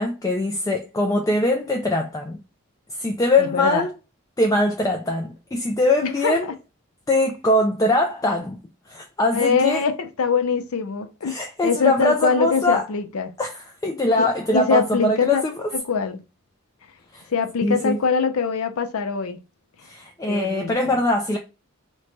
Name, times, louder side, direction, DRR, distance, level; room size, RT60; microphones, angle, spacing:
voice 1, 0.0-2.4 2.9-3.9 4.4-6.5 7.1-9.8 11.2-12.9 13.4-15.6 17.1-17.2 17.6-18.0 19.8-21.4, left 1 dB, 15° left, 0.3 m, -22 dB
voice 2, 3.4-3.8 6.2-6.3 9.3-13.3 14.5-15.4 15.9-16.2 17.3-19.4 20.3-21.0, left 5 dB, 80° left, 0.5 m, -23 dB
3.1 x 2.2 x 3.8 m
head